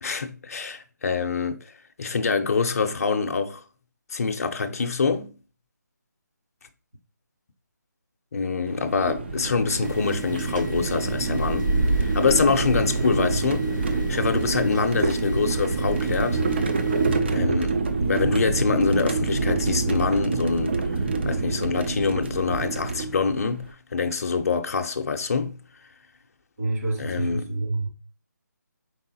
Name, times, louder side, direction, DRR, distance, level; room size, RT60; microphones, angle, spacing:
voice 1, 0.0-1.7 2.0-3.6 4.1-5.3 8.3-11.7 12.0-16.4 17.3-17.8 18.1-25.6 27.0-27.5, left 5 dB, 50° left, 0.6 m, -25 dB
sound 1, 8.7-23.7, right 3 dB, 35° right, 0.4 m, -26 dB
sound 2, 9.8-17.2, left 1 dB, 85° right, 2.0 m, -43 dB
voice 2, 26.6-27.9, right 2 dB, 55° right, 2.0 m, -27 dB
4.7 x 3.6 x 2.7 m
figure-of-eight pair, 165°, 10 cm